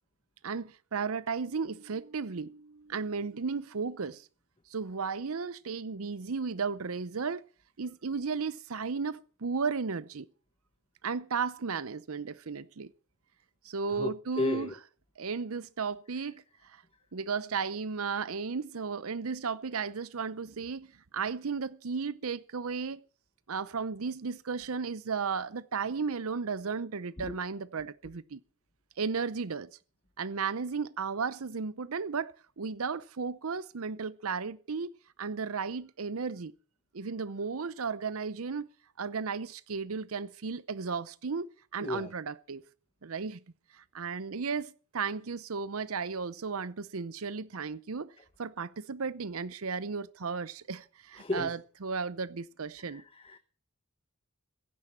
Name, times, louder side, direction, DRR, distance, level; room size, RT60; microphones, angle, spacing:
voice 1, 0.4-4.3 4.7-7.4 7.8-10.3 11.0-12.9 13.6-14.8 15.2-16.8 17.1-23.0 23.5-28.4 29.0-29.7 30.2-34.9 35.2-36.5 36.9-38.7 39.0-41.5 41.7-42.6 43.0-43.4 43.7-48.1 48.4-53.0, right 5 dB, 75° right, 0.7 m, -34 dB
voice 2, 14.0-14.7 27.3-27.4 41.8-42.1 51.2-51.5 52.9-53.4, left 2 dB, 25° left, 1.0 m, -34 dB
16.0 x 11.0 x 7.4 m
head